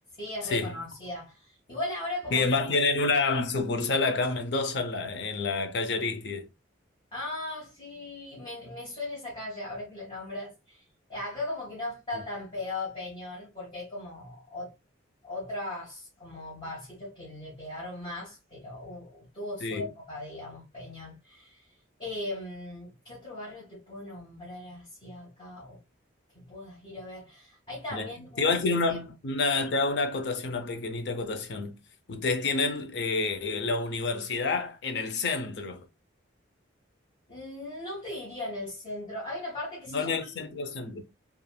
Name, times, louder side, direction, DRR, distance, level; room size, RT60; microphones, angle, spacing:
voice 1, 0.2-2.7 7.1-14.7 15.2-21.7 22.0-25.8 26.5-28.6 28.9-29.0 37.3-40.3, left 2 dB, 25° left, 1.1 m, -38 dB
voice 2, 2.3-6.5 19.6-19.9 27.9-28.1 28.4-31.7 32.1-35.9 39.9-41.0, left 3 dB, 55° left, 0.5 m, -28 dB
3.3 x 2.3 x 2.2 m
head